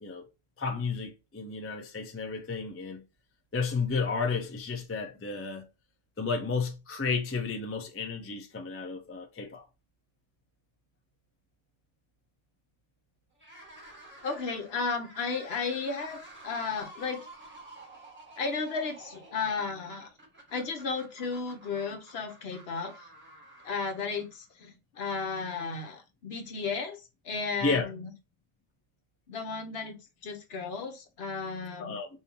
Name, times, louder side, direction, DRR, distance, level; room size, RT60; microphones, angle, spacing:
voice 1, 0.6-3.0 3.5-5.6 6.2-9.6 27.6-27.9 31.8-32.1, left 4 dB, 20° left, 0.3 m, -32 dB
sound 1, 13.3-24.6, right 1 dB, 10° right, 1.7 m, -51 dB
voice 2, 14.2-17.2 18.4-20.1 20.5-22.9 23.6-27.0 27.2-28.0 29.3-32.0, left 4 dB, 55° left, 0.9 m, -34 dB
5.2 x 2.7 x 2.9 m
omnidirectional pair, 1.4 m